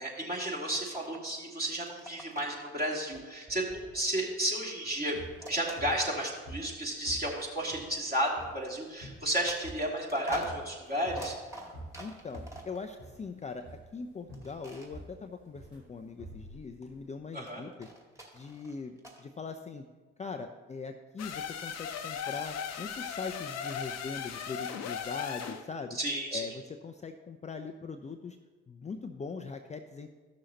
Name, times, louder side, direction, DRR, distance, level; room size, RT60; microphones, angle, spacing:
voice 1, 0.0-5.1 5.5-11.3 17.3-17.6 25.9-26.5, right 1 dB, 30° right, -3 dB, 2.7 m, -32 dB
sound 1, 0.7-1.4 1.6-2.6 3.1-4.6 5.4-6.5 7.1-7.2 9.5-12.8 14.3-14.9 17.5-19.2, equal, 10° right, 2.2 m, -46 dB
sound 2, 4.9-17.1, right 1 dB, 85° right, 2.0 m, -48 dB
voice 2, 12.0-13.7 13.9-17.9 18.3-19.8 20.2-26.0 26.3-28.4 28.7-30.1, left 4 dB, 20° left, 5 dB, 0.6 m, -41 dB
sound 3, 21.2-25.7, left 7 dB, 55° left, 0.8 m, -37 dB
14.0 x 6.3 x 3.0 m, 1.3 s
hypercardioid pair, 45°, 31 cm